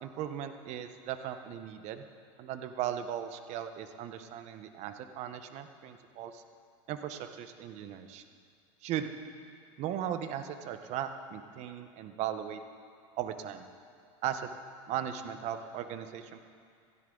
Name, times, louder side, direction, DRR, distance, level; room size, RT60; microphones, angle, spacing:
voice 1, 0.0-2.1 2.4-6.4 6.9-8.2 8.8-9.1 9.8-12.6 13.2-13.7 14.2-14.5 14.9-16.4, right 10 dB, 45° right, 8 dB, 1.1 m, -37 dB
17.0 x 15.0 x 3.9 m, 2.3 s
supercardioid pair, 125°, 16 cm